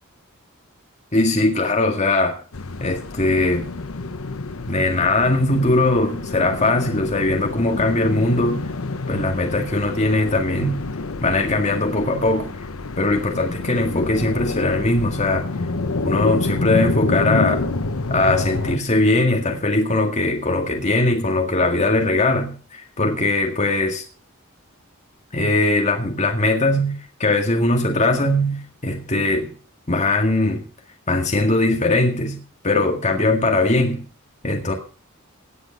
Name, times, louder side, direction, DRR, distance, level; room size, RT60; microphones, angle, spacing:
voice 1, 1.1-2.4 2.8-3.7 4.7-8.7 9.1-10.8 11.2-12.6 13.0-15.5 16.0-17.6 18.1-24.0 25.3-29.5 29.9-30.6 31.1-34.0 34.4-34.7, left 2 dB, 35° left, 2 dB, 2.0 m, -20 dB
sound 1, 2.5-18.8, left 3 dB, 80° left, 1.0 m, -28 dB
17.5 x 8.3 x 5.2 m, 0.39 s
head